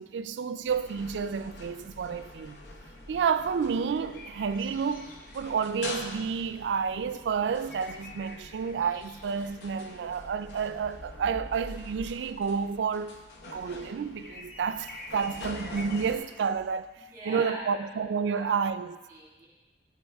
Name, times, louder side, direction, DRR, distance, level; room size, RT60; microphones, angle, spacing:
voice 1, 0.0-2.6 3.1-13.2 13.5-16.9 17.3-19.0, right 6 dB, 85° right, 0.4 m, -30 dB
sound 1, 0.6-16.7, left 1 dB, 50° left, 1.0 m, -52 dB
sound 2, 0.7-16.2, left 2 dB, 85° left, 0.9 m, -45 dB
voice 2, 17.0-17.8 18.3-18.4 18.8-19.5, right 1 dB, 20° right, 2.8 m, -42 dB
14.0 x 4.8 x 3.4 m
head